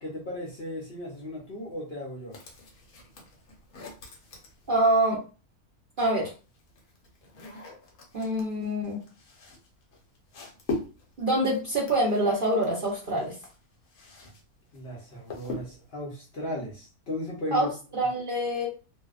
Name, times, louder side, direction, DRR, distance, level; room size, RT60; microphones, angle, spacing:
voice 1, 0.0-2.4 14.7-17.7, left 1 dB, 55° left, -3 dB, 0.8 m, -36 dB
sound 1, 2.3-5.2 6.2-14.4 14.7-16.0, left 3 dB, 75° left, 1.2 m, -41 dB
voice 2, 4.7-5.2 6.0-6.3 8.1-9.0 11.2-13.3 17.5-18.7, right 1 dB, 50° right, -4 dB, 0.6 m, -25 dB
2.7 x 2.0 x 2.3 m, 0.33 s
omnidirectional pair, 1.5 m